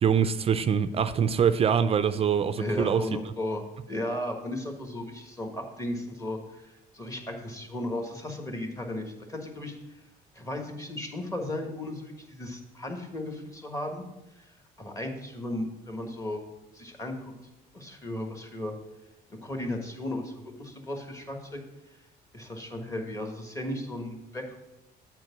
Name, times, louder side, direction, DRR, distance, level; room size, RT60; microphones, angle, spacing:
voice 1, 0.0-3.0, right 7 dB, 35° right, 12 dB, 0.4 m, -24 dB
voice 2, 2.6-9.7 10.3-14.0 14.3-16.4 16.7-17.3 17.7-18.7 19.4-21.6 22.3-24.6, left 1 dB, 20° left, 3 dB, 1.4 m, -35 dB
7.8 x 4.6 x 5.8 m, 0.97 s
cardioid pair, 110°, 17 cm